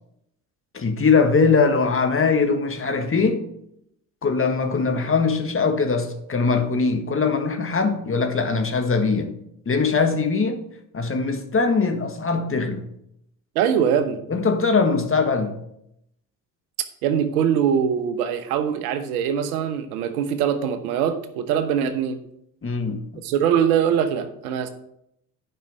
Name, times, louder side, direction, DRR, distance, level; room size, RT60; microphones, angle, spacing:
voice 1, 0.7-3.4 4.2-9.3 9.6-10.6 10.9-12.8 14.3-15.6 22.6-23.0, left 4 dB, 30° left, 1.8 m, -21 dB
voice 2, 13.5-14.2 17.0-22.2 23.2-24.7, right 8 dB, 75° right, 1.1 m, -22 dB
11.0 x 5.5 x 5.4 m
hypercardioid pair, 60°, 44 cm